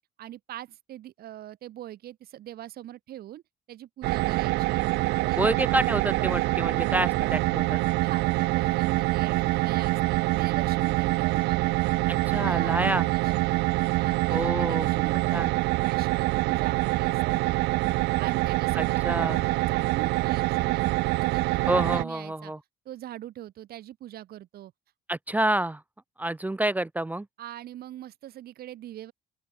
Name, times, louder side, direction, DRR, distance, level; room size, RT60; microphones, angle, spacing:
voice 1, 0.2-3.4 3.7-4.8 5.1-5.5 8.0-11.9 12.3-13.4 14.0-15.5 15.8-17.4 18.2-20.8 21.2-22.5 22.8-24.7 27.4-29.1, right 13 dB, 65° right, 3.0 m, -42 dB
sound 1, 4.0-22.0, right 20 dB, 85° right, 0.6 m, -25 dB
voice 2, 5.3-7.8 12.1-13.1 14.3-14.9 15.3-15.5 18.8-19.4 21.7-22.6 25.1-25.8 26.2-27.3, right 1 dB, 10° right, 0.6 m, -28 dB
open air
cardioid pair, 110°, 17 cm